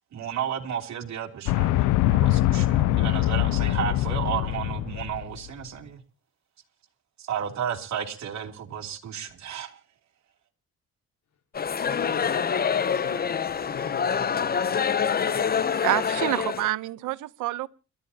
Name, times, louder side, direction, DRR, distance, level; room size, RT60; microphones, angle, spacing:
voice 1, 0.1-6.0 7.2-9.8, right 9 dB, 65° right, 3.1 m, -33 dB
sound 1, 1.5-5.4, left 15 dB, 90° left, 0.7 m, -23 dB
sound 2, 11.5-16.7, left 7 dB, 30° left, 0.7 m, -26 dB
voice 2, 11.8-15.9, left 8 dB, 70° left, 4.7 m, -40 dB
voice 3, 15.8-17.7, right 16 dB, 90° right, 0.9 m, -27 dB
30.0 x 13.0 x 2.8 m
cardioid pair, 90°, 30 cm